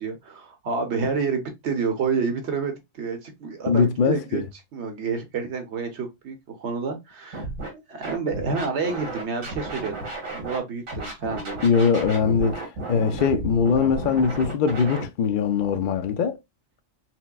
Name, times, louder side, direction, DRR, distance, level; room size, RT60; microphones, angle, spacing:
voice 1, 0.0-4.4 4.7-7.5 7.7-11.7, right 5 dB, 60° right, 1.0 m, -29 dB
voice 2, 3.7-4.5 11.6-16.4, left 6 dB, 70° left, 0.5 m, -22 dB
Scratching (performance technique), 7.3-7.7 8.0-10.6 10.9-15.1, right 2 dB, 85° right, 1.9 m, -33 dB
5.8 x 2.1 x 2.3 m
omnidirectional pair, 1.4 m